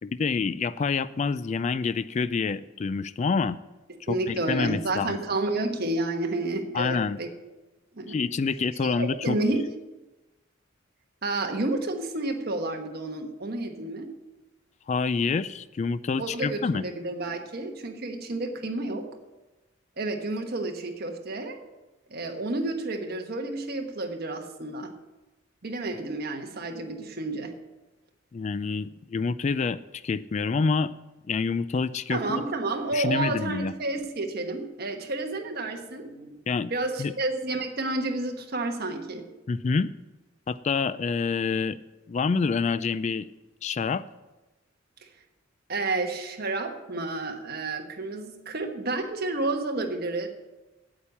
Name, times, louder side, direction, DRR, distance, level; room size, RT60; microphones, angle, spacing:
voice 1, 0.0-3.6 4.1-5.2 6.7-7.2 8.1-9.4 14.9-16.8 28.3-29.8 30.0-30.9 31.3-32.4 32.9-33.7 36.5-36.7 37.0-37.1 39.5-39.9 40.5-41.8 42.1-43.2 43.6-44.0, left 5 dB, 35° left, 15 dB, 0.3 m, -27 dB
voice 2, 4.1-7.3 8.0-8.2 8.9-9.6 11.2-14.1 16.2-19.1 20.0-21.6 22.1-24.9 25.6-27.5 32.1-36.4 36.7-39.3 45.7-50.3, right 2 dB, 50° right, 4 dB, 1.3 m, -30 dB
8.7 x 8.7 x 7.0 m, 1.1 s
head